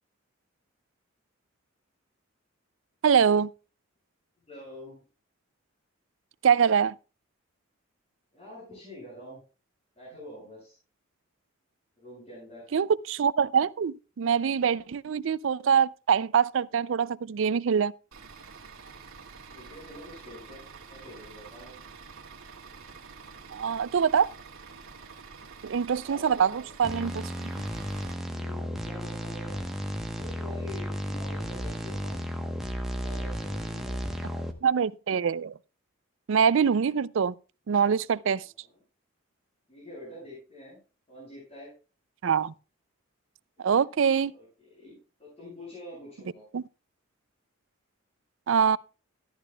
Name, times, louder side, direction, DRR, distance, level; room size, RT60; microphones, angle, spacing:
voice 1, 3.0-3.5 6.4-6.9 12.7-17.9 23.5-24.3 25.6-27.5 34.6-35.5 36.3-37.3 37.7-38.4 42.2-42.5 43.6-44.3 46.5-46.6 48.5-48.8, right 7 dB, 65° right, 0.4 m, -24 dB
voice 2, 4.5-5.0 8.3-9.4 10.0-10.8 12.0-12.7 19.5-21.7 26.0-26.7 28.3-29.7 30.1-32.3 32.9-34.4 38.3-38.8 39.7-40.8 41.1-41.7 43.6-43.8 44.3-46.4, left 1 dB, 30° left, 7.2 m, -46 dB
Bus / Idling, 18.1-28.1, right 5 dB, 85° right, 2.1 m, -47 dB
sound 1, 26.8-34.5, equal, ahead, 1.0 m, -34 dB
14.0 x 11.0 x 2.3 m
head